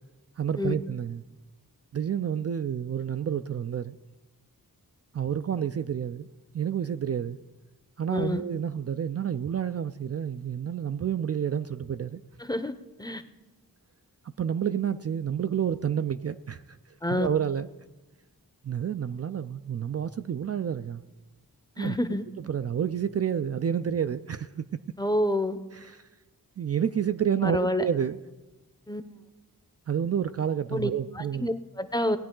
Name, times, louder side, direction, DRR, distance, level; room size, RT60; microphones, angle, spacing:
voice 1, 0.4-1.2 1.9-4.0 5.1-6.3 6.5-7.4 8.0-12.2 14.4-16.8 17.1-17.7 18.6-21.0 21.8-21.9 22.5-24.8 25.8-26.0 26.6-28.2 29.9-31.5, right 8 dB, 45° right, 0.4 m, -29 dB
voice 2, 8.1-8.4 12.4-12.7 13.0-13.2 17.0-17.3 21.8-22.2 25.0-25.6 27.4-27.9 28.9-29.0 30.7-32.2, left 1 dB, 10° left, 0.7 m, -28 dB
18.5 x 9.5 x 3.8 m
wide cardioid pair, 70°, 36 cm